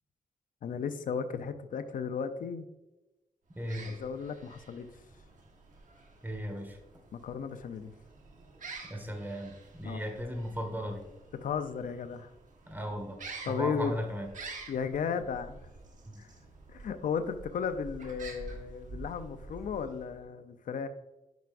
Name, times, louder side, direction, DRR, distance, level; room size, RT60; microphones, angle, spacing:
voice 1, 0.6-2.7 3.9-4.9 7.1-7.9 9.8-10.0 11.4-12.3 13.4-13.9 14.7-15.7 16.2-16.3 16.7-20.9, left 6 dB, 90° left, 10 dB, 0.6 m, -35 dB
sound 1, 3.5-20.2, right 3 dB, 70° right, 1.3 m, -49 dB
voice 2, 3.6-3.9 6.2-6.8 8.9-11.1 12.7-14.3 16.0-16.2, equal, 15° right, 3 dB, 1.5 m, -36 dB
9.2 x 5.7 x 2.5 m, 1.0 s
cardioid pair, 85°, 13 cm